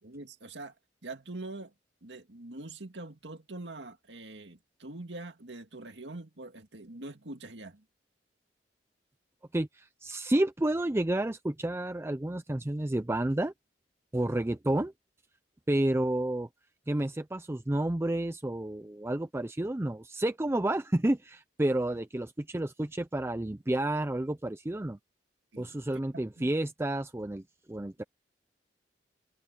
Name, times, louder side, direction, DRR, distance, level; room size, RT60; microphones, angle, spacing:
voice 1, 0.0-0.7 1.0-1.7 2.0-7.8 25.5-25.7 26.1-26.5 28.0-28.1, right 2 dB, 75° right, 2.2 m, -44 dB
voice 2, 9.5-13.5 14.1-14.9 15.7-16.5 16.9-25.0 25.6-27.4 27.7-28.0, right 1 dB, 15° right, 0.5 m, -30 dB
open air
head